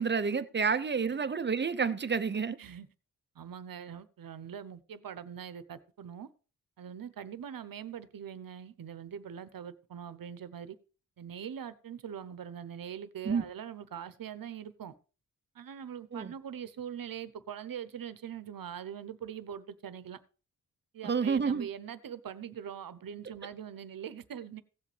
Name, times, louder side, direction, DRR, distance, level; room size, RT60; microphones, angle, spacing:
voice 1, 0.0-2.6 13.2-13.4 16.1-16.3 21.0-21.7, right 5 dB, 30° right, 0.7 m, -29 dB
voice 2, 3.3-6.3 6.8-10.8 11.2-14.9 15.5-20.2 20.9-24.6, right 8 dB, 75° right, 0.9 m, -42 dB
16.5 x 7.5 x 3.3 m
wide cardioid pair, 95°, 35 cm